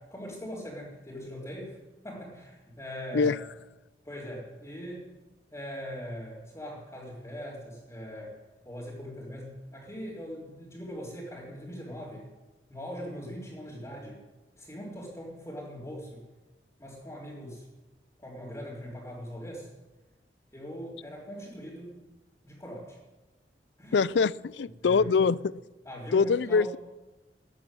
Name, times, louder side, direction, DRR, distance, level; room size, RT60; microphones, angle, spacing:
voice 1, 0.0-1.8 2.0-3.3 4.0-5.1 5.5-8.4 8.6-12.3 12.7-14.2 14.6-16.2 16.8-17.7 18.2-19.7 20.5-22.0 22.4-23.0 23.8-24.0 24.8-25.3 25.8-26.7, equal, 20° left, -8 dB, 3.8 m, -41 dB
voice 2, 23.9-25.4 26.1-26.8, left 5 dB, 85° left, 21 dB, 0.4 m, -24 dB
14.5 x 10.5 x 9.2 m, 1.1 s
head